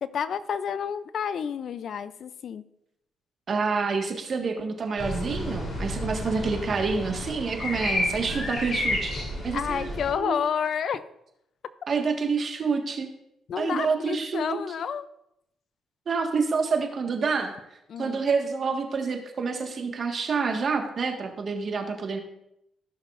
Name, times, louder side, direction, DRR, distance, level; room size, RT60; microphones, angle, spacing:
voice 1, 0.0-2.6 9.5-11.0 13.5-15.0 17.9-18.2, left 7 dB, 60° left, 14 dB, 0.5 m, -30 dB
voice 2, 3.5-9.1 9.4-10.4 11.9-13.1 13.6-14.6 16.1-17.5 18.0-22.2, right 4 dB, 50° right, 3 dB, 1.6 m, -28 dB
sound 1, 5.0-10.1, left 1 dB, 45° left, 3.4 m, -31 dB
15.5 x 6.4 x 2.5 m, 0.81 s
cardioid pair, 90°, 0 cm